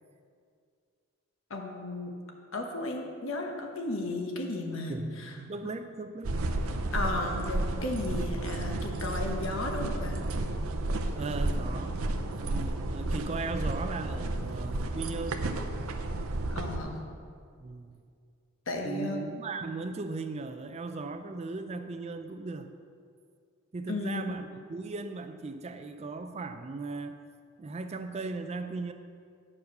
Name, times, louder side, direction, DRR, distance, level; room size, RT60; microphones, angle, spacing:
voice 1, 1.5-2.1 2.5-5.3 6.9-10.2 16.5-17.0 18.7-19.2 23.9-24.4, left 2 dB, 70° left, 2 dB, 1.2 m, -34 dB
voice 2, 4.9-6.4 11.1-12.0 12.3-15.4 17.6-18.0 18.8-22.7 23.7-27.2 27.6-28.9, right 3 dB, 30° right, 8 dB, 0.4 m, -37 dB
sound 1, 6.2-16.8, right 2 dB, 80° right, 0.6 m, -32 dB
9.7 x 4.6 x 6.5 m, 2.3 s
head